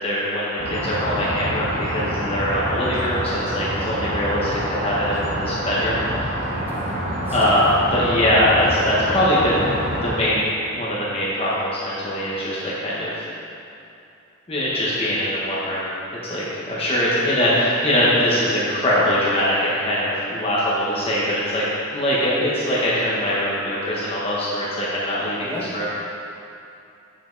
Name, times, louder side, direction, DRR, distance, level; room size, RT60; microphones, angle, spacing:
voice 1, 0.0-6.0 7.3-13.3 14.5-15.9 16.2-21.6 21.9-25.8, left 1 dB, 30° left, -8 dB, 1.3 m, -22 dB
sound 1, 0.6-10.1, right 1 dB, 85° right, 2.0 m, -27 dB
voice 2, 6.7-7.6 25.4-25.7, left 1 dB, 10° right, -6 dB, 1.5 m, -35 dB
8.3 x 7.3 x 4.0 m, 2.7 s
head